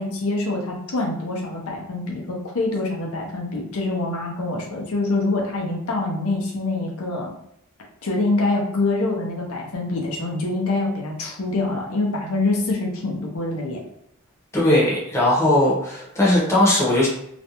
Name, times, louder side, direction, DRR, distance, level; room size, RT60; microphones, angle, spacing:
voice 1, 0.0-7.3 8.0-13.8, left 2 dB, 75° left, -1 dB, 0.6 m, -25 dB
voice 2, 14.5-17.1, left 1 dB, 10° left, -5 dB, 0.7 m, -18 dB
2.5 x 2.1 x 2.9 m, 0.76 s
head